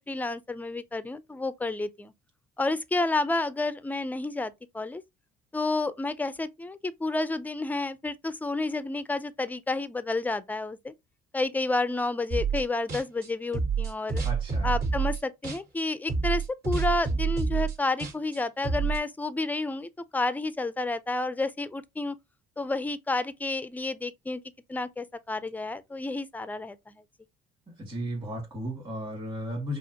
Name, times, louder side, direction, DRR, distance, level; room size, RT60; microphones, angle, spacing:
voice 1, 0.1-2.1 2.6-5.0 5.5-10.9 11.3-14.2 14.6-22.2 22.6-24.4 24.7-26.9, left 2 dB, 10° left, 0.4 m, -30 dB
sound 1, 12.3-12.6 12.9-15.8 16.1-19.0, right 5 dB, 65° right, 2.6 m, -28 dB
voice 2, 14.2-14.8 27.7-29.8, equal, 30° right, 2.1 m, -35 dB
5.1 x 2.5 x 2.8 m
cardioid pair, 110°, 17 cm